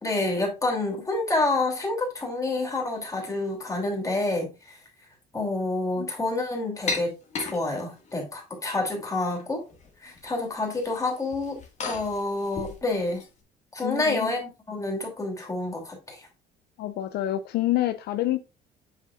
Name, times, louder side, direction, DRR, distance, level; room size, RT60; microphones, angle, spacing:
voice 1, 0.0-4.8 5.3-9.6 10.0-13.2 13.7-16.3, left 2 dB, 20° left, 2.9 m, -28 dB
sound 1, 6.9-8.1 8.8-9.4 9.7-10.3 10.6-13.3, left 3 dB, 45° left, 1.8 m, -36 dB
voice 2, 13.8-14.3 16.8-18.4, left 14 dB, 70° left, 0.5 m, -27 dB
7.4 x 5.5 x 2.5 m
cardioid pair, 110°, 17 cm